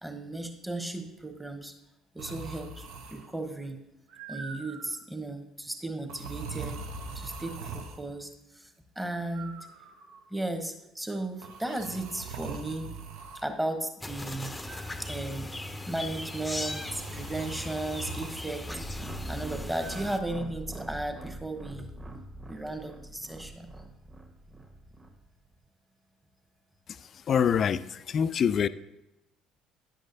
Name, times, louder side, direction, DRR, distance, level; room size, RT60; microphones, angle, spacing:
voice 1, 0.0-1.8 2.1-3.8 4.3-9.6 10.3-12.9 13.3-14.5 15.0-15.5 15.9-21.9 22.5-23.7, right 2 dB, 10° right, 6 dB, 1.1 m, -35 dB
sound 1, 2.2-3.4 4.1-5.0 6.1-8.0 9.3-10.3 11.4-13.5 14.7-15.4 16.6-18.5 19.8-20.2, right 4 dB, 65° right, 0.7 m, -42 dB
sound 2, 14.0-20.2, left 1 dB, 10° left, 0.6 m, -38 dB
sound 3, 18.7-25.1, right 1 dB, 25° right, 1.3 m, -43 dB
voice 2, 26.9-28.7, left 7 dB, 45° left, 15 dB, 0.3 m, -26 dB
9.8 x 7.9 x 2.7 m, 0.90 s
figure-of-eight pair, 55°, 0 cm